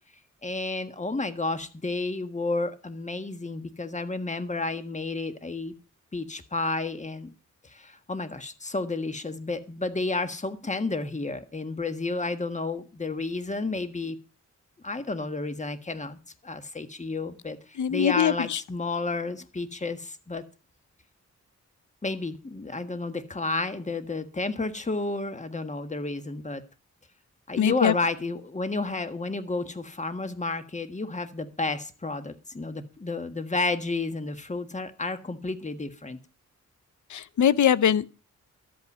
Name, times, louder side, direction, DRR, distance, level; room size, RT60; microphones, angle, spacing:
voice 1, 0.4-5.7 6.1-7.3 7.6-14.2 14.8-16.2 16.4-17.6 17.9-20.4 22.0-26.6 27.5-36.2, left 3 dB, 25° left, 1.5 m, -31 dB
voice 2, 17.8-18.6 27.6-27.9 37.1-38.1, left 9 dB, 75° left, 0.7 m, -22 dB
12.5 x 8.7 x 5.5 m
cardioid pair, 90°, 30 cm